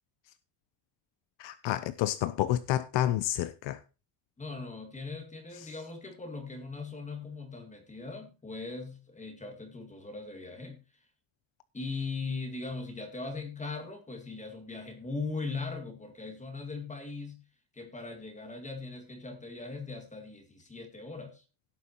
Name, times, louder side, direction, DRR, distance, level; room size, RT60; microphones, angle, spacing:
voice 1, 1.4-3.8 5.6-5.7, left 13 dB, 75° left, 0.8 m, -29 dB
voice 2, 4.4-10.8 11.7-17.4 17.7-21.4, left 3 dB, 15° left, 2.2 m, -39 dB
17.0 x 8.3 x 3.0 m
cardioid pair, 165°, 44 cm